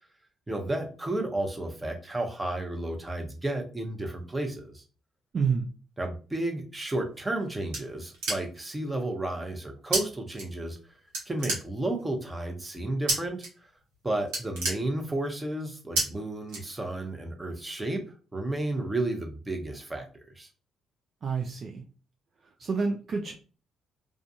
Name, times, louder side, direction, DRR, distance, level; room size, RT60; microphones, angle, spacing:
voice 1, 0.5-4.8 6.0-10.8 11.3-13.7 14.0-18.0 18.3-20.0 20.4-20.5, right 2 dB, 20° right, 3 dB, 0.8 m, -32 dB
voice 2, 5.3-5.7 21.2-21.8 22.4-23.3, right 5 dB, 50° right, 2 dB, 0.4 m, -29 dB
sound 1, 7.0-8.7 9.9-10.0 10.3-10.9 11.1-12.1 13.1-13.5 13.8-13.9 14.2-15.4 15.9-16.0 16.5-17.1, right 2 dB, 80° right, 0.9 m, -30 dB
2.4 x 2.3 x 2.7 m, 0.36 s
hypercardioid pair, 50°, 0 cm